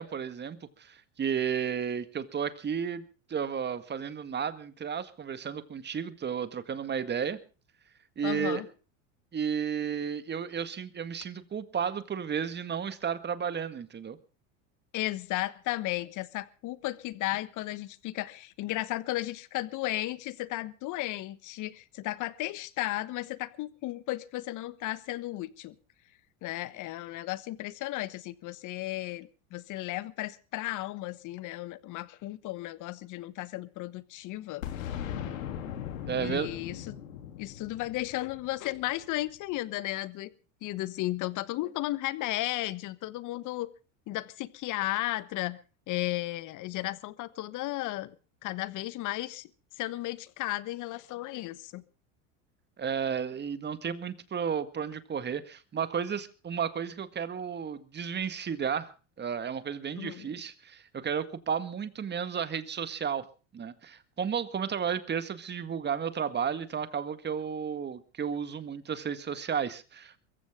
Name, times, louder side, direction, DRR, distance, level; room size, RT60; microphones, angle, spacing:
voice 1, 0.0-3.0 3.3-7.4 8.2-8.6 9.3-14.2 36.1-36.5 52.8-58.9 59.2-63.2 63.5-70.2, right 7 dB, 25° right, 12 dB, 1.8 m, -33 dB
voice 2, 8.2-8.7 14.9-25.8 26.4-34.6 36.2-37.0 37.4-40.3 40.6-43.7 44.1-45.6 45.9-48.2 48.4-49.5 49.8-51.8 60.0-60.3, left 17 dB, 50° left, 16 dB, 1.3 m, -34 dB
Boom, 34.6-39.3, left 10 dB, 85° left, 3.2 m, -39 dB
23.0 x 15.0 x 3.7 m, 0.34 s
hypercardioid pair, 100°, 39 cm